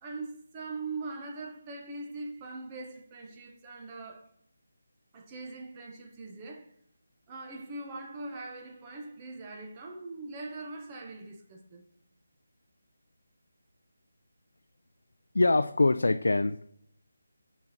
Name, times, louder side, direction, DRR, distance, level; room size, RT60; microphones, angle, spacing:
voice 1, 0.0-4.3 5.1-6.7 7.3-11.8, right 3 dB, 15° right, 0.6 m, -41 dB
voice 2, 15.3-16.7, left 2 dB, 80° left, 0.3 m, -24 dB
7.1 x 4.0 x 4.2 m
figure-of-eight pair, 175°, 0 cm